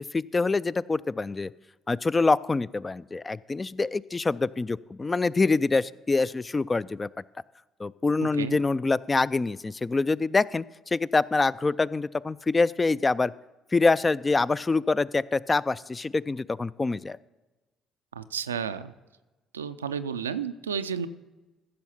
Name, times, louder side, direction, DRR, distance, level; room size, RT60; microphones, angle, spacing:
voice 1, 0.1-1.5 1.9-7.1 7.8-13.3 13.7-17.2, left 3 dB, 25° left, 19 dB, 0.3 m, -25 dB
voice 2, 18.1-18.9 19.5-21.1, right 7 dB, 90° right, 11 dB, 0.4 m, -32 dB
14.5 x 6.3 x 5.7 m, 1.1 s
hypercardioid pair, 50°, 0 cm